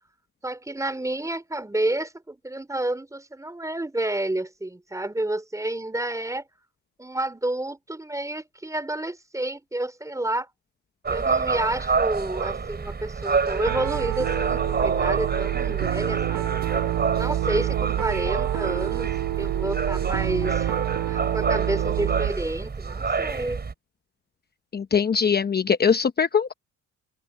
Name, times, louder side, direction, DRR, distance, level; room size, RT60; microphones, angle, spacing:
voice 1, 0.4-6.4 7.0-10.5 11.1-16.6 17.1-19.1 19.4-20.8 21.1-23.6, right 1 dB, 10° right, 4.0 m, -30 dB
sound 1, 11.0-23.7, right 5 dB, 35° right, 4.6 m, -28 dB
Piano, 13.7-22.3, right 14 dB, 85° right, 1.0 m, -27 dB
voice 2, 24.7-26.5, left 6 dB, 35° left, 0.9 m, -21 dB
open air
cardioid pair, 90°, 30 cm